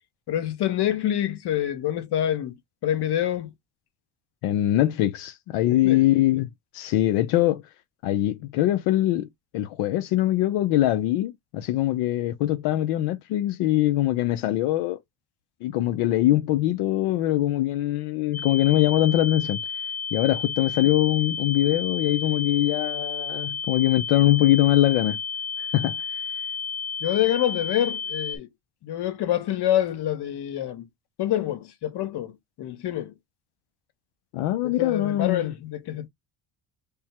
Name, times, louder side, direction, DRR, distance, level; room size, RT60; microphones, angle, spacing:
voice 1, 0.3-2.5 2.8-3.5 5.7-6.0 27.0-28.5 28.8-30.8 31.2-32.3 32.6-33.1 34.6-36.1, left 11 dB, 55° left, 1.0 m, -26 dB
voice 2, 4.4-6.5 6.7-7.6 8.0-9.3 9.5-15.0 15.6-19.6 20.1-25.2 25.6-26.0 34.3-35.4, left 14 dB, 85° left, 0.7 m, -22 dB
sound 1, 18.3-28.4, left 6 dB, 5° left, 0.6 m, -32 dB
3.5 x 2.1 x 4.3 m
cardioid pair, 105°, 49 cm